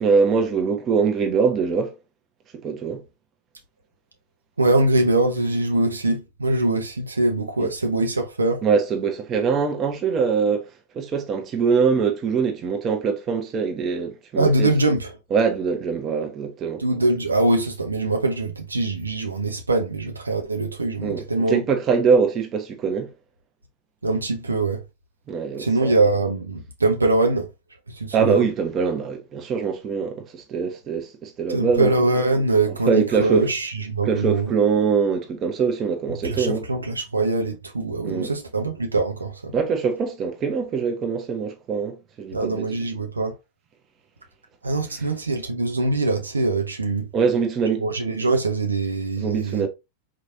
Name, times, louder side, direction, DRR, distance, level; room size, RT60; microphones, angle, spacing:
voice 1, 0.0-1.9 2.6-3.0 7.6-7.7 8.6-10.7 10.9-14.7 15.3-16.8 21.0-23.1 25.3-25.9 28.1-31.9 32.9-33.5 34.0-36.7 38.0-38.3 39.5-42.6 47.1-47.9 49.2-49.7, right 5 dB, 30° right, 0.9 m, -23 dB
voice 2, 4.6-8.6 14.4-15.1 16.8-21.6 24.0-24.8 25.6-27.5 27.9-28.4 31.5-34.5 36.2-39.5 42.3-43.3 44.6-47.1 47.8-49.7, right 2 dB, 80° right, 0.7 m, -23 dB
4.1 x 3.0 x 2.7 m
figure-of-eight pair, 90°, 0 cm